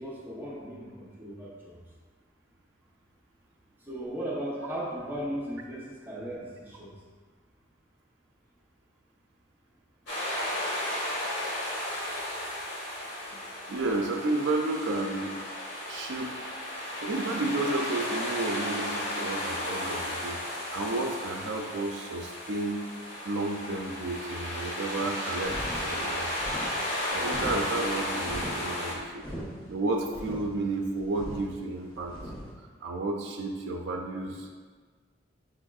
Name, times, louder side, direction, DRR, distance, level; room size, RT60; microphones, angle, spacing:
voice 1, 0.0-1.8 3.8-7.0, right 1 dB, 10° right, -7 dB, 0.7 m, -37 dB
sound 1, 10.1-28.9, left 1 dB, 85° left, 1.5 m, -34 dB
voice 2, 13.7-15.3 15.9-16.4 17.0-22.9 23.2-26.5 27.1-29.3 29.7-32.2 32.6-34.5, right 2 dB, 75° right, 2 dB, 0.4 m, -32 dB
sound 2, 25.4-32.5, equal, 25° left, 0.9 m, -40 dB
5.9 x 3.5 x 2.3 m, 1.5 s
head